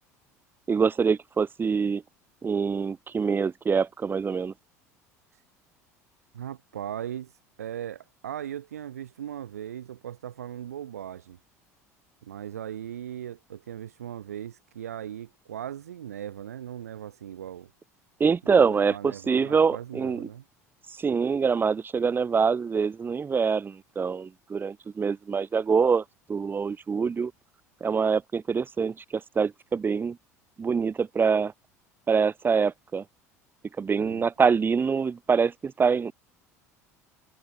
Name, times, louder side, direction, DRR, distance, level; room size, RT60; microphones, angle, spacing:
voice 1, 0.7-2.0 2.4-4.5 18.2-20.3 21.0-26.0 26.3-27.3 27.8-30.2 30.6-31.5 32.1-33.0 33.8-36.1, right 5 dB, 25° right, 4.6 m, -25 dB
voice 2, 6.3-7.3 7.6-11.4 12.2-17.7 18.4-20.4 34.0-34.2, right 10 dB, 75° right, 4.5 m, -38 dB
figure-of-eight pair, 65°, 8 cm